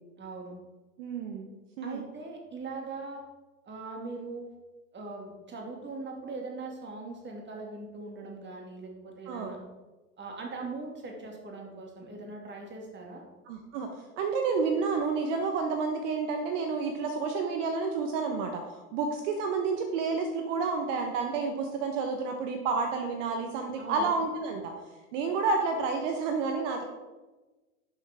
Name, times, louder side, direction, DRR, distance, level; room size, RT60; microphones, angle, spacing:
voice 1, 0.2-0.5 1.8-3.2 3.6-4.6 4.9-9.6 10.2-13.2 23.8-24.1, right 3 dB, 25° right, 1 dB, 2.6 m, -40 dB
voice 2, 1.0-1.5 1.8-2.0 9.3-9.5 13.5-13.9 14.2-24.7 25.1-26.8, right 4 dB, 60° right, 4 dB, 1.3 m, -30 dB
11.5 x 6.9 x 3.7 m, 1.2 s
figure-of-eight pair, 80°, 41 cm